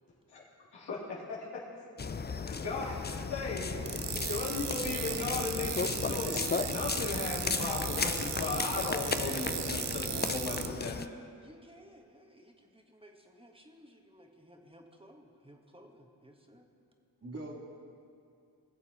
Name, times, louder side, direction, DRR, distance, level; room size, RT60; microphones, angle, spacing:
voice 1, 0.7-1.6 2.4-11.0, left 3 dB, 90° left, -6 dB, 2.8 m, -37 dB
sound 1, 2.0-11.1, left 5 dB, 25° left, 0.5 m, -35 dB
voice 2, 3.9-4.3 5.1-5.2 6.3-6.7 9.0-10.4 17.2-17.6, right 2 dB, 35° right, -2 dB, 2.5 m, -44 dB
sound 2, 3.9-10.7, right 9 dB, 85° right, 0.7 m, -37 dB
voice 3, 11.4-16.7, equal, 15° right, 2 dB, 1.5 m, -57 dB
20.5 x 7.3 x 4.3 m, 2.5 s
cardioid pair, 55°, 40 cm